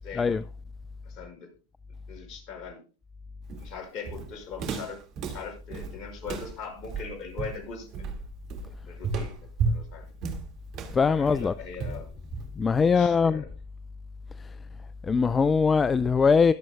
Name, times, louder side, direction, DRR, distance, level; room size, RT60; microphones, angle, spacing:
voice 1, 0.0-0.4 1.0-1.5 2.1-2.8 3.6-8.1 8.8-9.4 9.7-10.1 11.1-12.1 12.9-13.5, left 5 dB, 45° left, 6.0 m, -41 dB
Walk footsteps, 3.5-12.8, right 4 dB, 45° right, 2.1 m, -34 dB
voice 2, 10.9-11.5 12.6-13.4 15.0-16.5, left 5 dB, 20° left, 0.5 m, -21 dB
22.0 x 7.6 x 2.3 m
hypercardioid pair, 90°, 0 cm